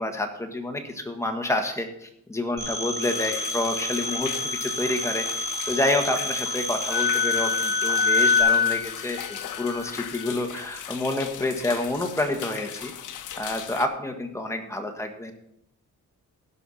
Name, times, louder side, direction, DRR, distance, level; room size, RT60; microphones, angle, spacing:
voice 1, 0.0-12.9 13.4-15.3, left 2 dB, 10° left, 4 dB, 1.5 m, -28 dB
Telephone, 2.6-8.4, left 1 dB, 35° right, 4.0 m, -31 dB
sound 1, 3.0-13.9, left 9 dB, 70° left, 0.9 m, -38 dB
Wind instrument woodwind instrument, 6.9-10.3, left 5 dB, 35° left, 0.9 m, -24 dB
16.5 x 5.7 x 4.3 m, 0.76 s
cardioid pair, 110°, 32 cm